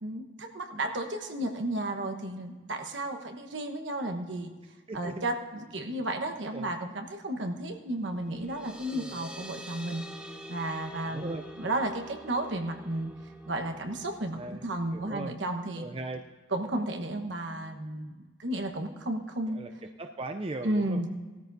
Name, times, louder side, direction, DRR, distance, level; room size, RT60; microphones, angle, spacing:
voice 1, 0.0-4.5 4.9-10.0 10.5-13.1 13.5-15.9 16.5-19.6 20.6-21.1, right 1 dB, 65° right, 5 dB, 1.2 m, -33 dB
voice 2, 4.9-5.2 6.4-6.7 8.9-9.2 11.0-11.4 14.3-14.6 14.9-15.3 15.8-16.2 19.5-19.7 20.0-21.0, right 2 dB, 30° right, 6 dB, 0.4 m, -38 dB
sound 1, 8.0-15.2, equal, 5° right, 1.1 m, -47 dB
18.5 x 13.5 x 2.7 m, 1.4 s
head